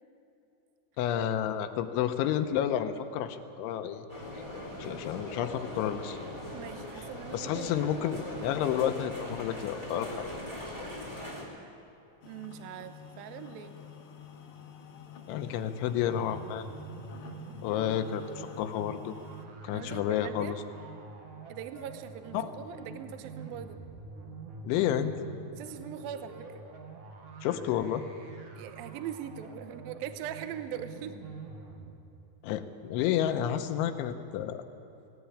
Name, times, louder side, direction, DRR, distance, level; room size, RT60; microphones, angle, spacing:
voice 1, 1.0-4.1 4.8-6.2 7.3-10.1 15.3-16.7 17.6-19.1 19.6-20.6 22.3-22.5 24.6-25.1 27.4-28.0 32.4-34.6, left 10 dB, 85° left, 8 dB, 3.2 m, -30 dB
sound 1, 4.1-11.4, left 1 dB, 10° right, 2.5 m, -41 dB
voice 2, 6.5-7.8 12.2-13.8 19.7-20.6 21.5-23.8 25.6-26.7 28.6-31.1, right 9 dB, 80° right, 9 dB, 2.2 m, -41 dB
sound 2, 12.2-19.5, left 7 dB, 65° left, 2.3 m, -49 dB
sound 3, 15.9-31.9, right 4 dB, 55° right, 2.4 m, -46 dB
19.0 x 17.5 x 8.6 m, 2.9 s
omnidirectional pair, 5.5 m